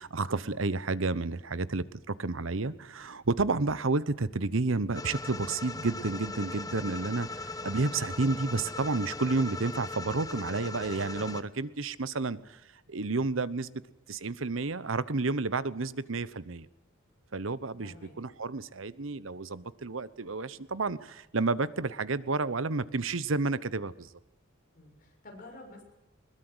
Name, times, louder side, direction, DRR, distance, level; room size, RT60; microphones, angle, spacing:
voice 1, 0.0-12.6 12.9-13.8 14.1-16.7 17.3-24.1, right 3 dB, 75° right, 17 dB, 1.0 m, -31 dB
sound 1, 4.9-11.4, left 2 dB, 20° left, 1.0 m, -39 dB
voice 2, 17.8-18.1 24.7-25.8, left 2 dB, 45° left, 1 dB, 6.8 m, -50 dB
21.5 x 20.5 x 8.0 m, 0.92 s
head